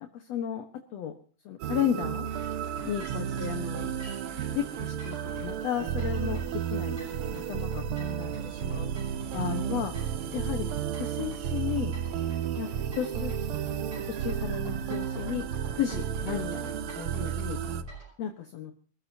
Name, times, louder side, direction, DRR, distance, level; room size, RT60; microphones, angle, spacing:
voice 1, 0.1-0.6 0.9-1.1 1.5-2.3 2.8-4.0 4.5-8.9 9.3-9.9 10.3-10.7 11.0-12.0 12.6-13.7 13.9-15.5 15.7-17.6 18.2-18.7, left 10 dB, 60° left, 4 dB, 2.3 m, -34 dB
sound 1, 1.6-17.8, right 9 dB, 85° right, 1.2 m, -33 dB
sound 2, 2.2-18.1, equal, 60° right, 9.4 m, -46 dB
27.0 x 14.5 x 2.8 m, 0.41 s
omnidirectional pair, 3.6 m